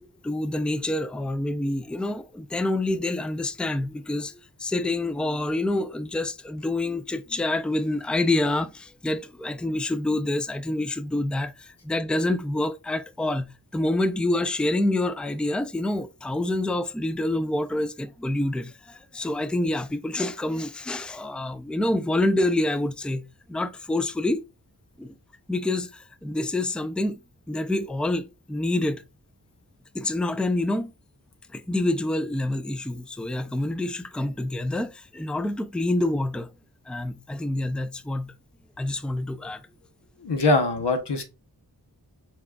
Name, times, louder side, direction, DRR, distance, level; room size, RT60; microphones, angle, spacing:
voice 1, 0.0-24.4 25.0-25.1 25.5-27.2 27.5-29.0 29.9-30.9 31.5-36.5 36.9-38.3 38.8-39.6, left 1 dB, ahead, 0.4 m, -27 dB
voice 2, 40.2-41.2, left 2 dB, 90° left, 1.0 m, -22 dB
4.7 x 4.2 x 2.3 m
cardioid pair, 40°, 40 cm